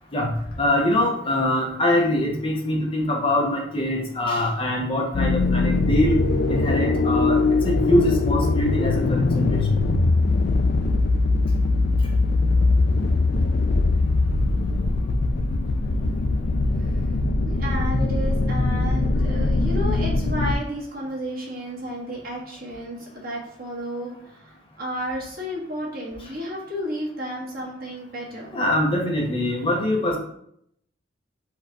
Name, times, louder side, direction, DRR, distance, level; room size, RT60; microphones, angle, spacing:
voice 1, 0.6-6.2 6.5-7.4 7.6-9.6 28.5-30.2, left 1 dB, 30° left, -1 dB, 0.7 m, -23 dB
sound 1, 5.1-20.5, left 3 dB, 55° left, 0.3 m, -21 dB
voice 2, 17.4-28.6, equal, 50° right, -5 dB, 1.5 m, -32 dB
4.5 x 2.4 x 4.6 m, 0.70 s
head